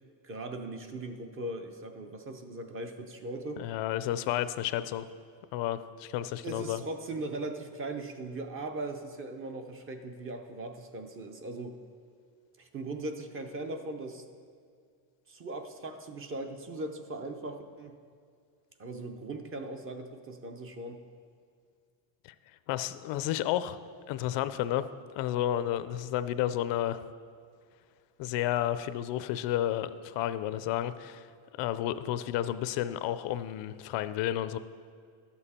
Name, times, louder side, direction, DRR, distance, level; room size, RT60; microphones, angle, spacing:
voice 1, 0.2-3.6 6.4-11.8 12.6-14.2 15.3-18.0 18.8-21.0, right 2 dB, 25° right, 6 dB, 0.6 m, -39 dB
voice 2, 3.6-5.1 5.5-6.8 22.7-23.8 24.1-24.9 25.2-27.0 28.2-31.3 31.6-34.6, left 12 dB, 65° left, 13 dB, 0.5 m, -31 dB
12.0 x 7.1 x 4.2 m, 2.2 s
cardioid pair, 145°, 48 cm